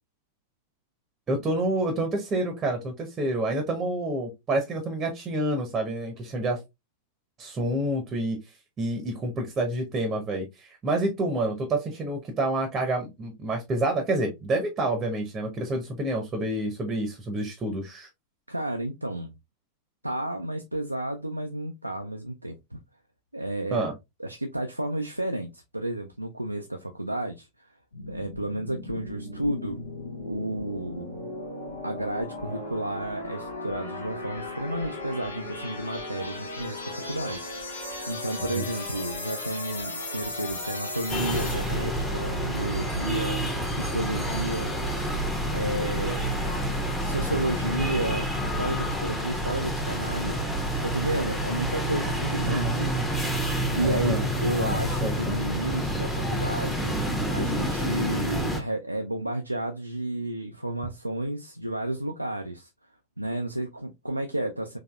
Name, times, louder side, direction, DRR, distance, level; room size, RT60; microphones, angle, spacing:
voice 1, 1.3-6.6 7.4-8.4 8.8-18.1 23.7-23.9 38.5-38.6 52.4-53.1 53.7-54.3 54.6-55.2, right 2 dB, 20° right, 0.8 m, -28 dB
voice 2, 18.5-19.3 20.0-22.8 23.3-23.9 24.2-27.7 28.1-29.8 30.2-31.3 31.8-37.5 37.8-44.8 45.5-46.4 47.0-50.5 50.8-52.9 53.7-62.7 63.2-64.8, right 1 dB, 85° right, 0.3 m, -32 dB
sound 1, 27.9-41.9, left 2 dB, 75° left, 1.0 m, -36 dB
sound 2, 41.1-58.6, equal, 5° left, 0.9 m, -28 dB
3.9 x 2.7 x 2.3 m
figure-of-eight pair, 90°, 0 cm